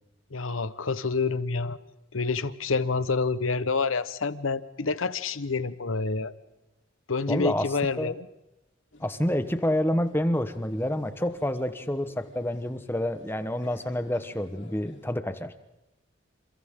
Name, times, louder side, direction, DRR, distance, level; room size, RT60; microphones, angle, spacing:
voice 1, 0.3-1.8 2.1-6.3 7.1-8.3, left 4 dB, 85° left, 14 dB, 1.1 m, -28 dB
voice 2, 7.3-7.7 8.0-8.1 9.0-15.5, left 1 dB, 10° left, 10 dB, 1.1 m, -28 dB
sound 1, 8.9-15.1, left 1 dB, 60° left, 3.5 m, -54 dB
29.5 x 28.5 x 3.8 m, 0.96 s
head